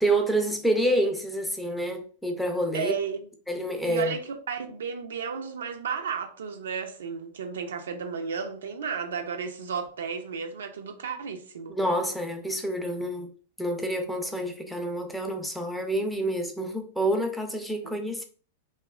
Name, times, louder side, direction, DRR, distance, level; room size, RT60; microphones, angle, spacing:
voice 1, 0.0-2.9 3.5-4.2 11.7-13.3 13.6-18.2, right 1 dB, ahead, 0.5 m, -28 dB
voice 2, 2.7-3.3 3.9-11.8 17.8-18.0, right 6 dB, 75° right, 0.4 m, -33 dB
2.8 x 2.1 x 2.3 m
hypercardioid pair, 100°, 0 cm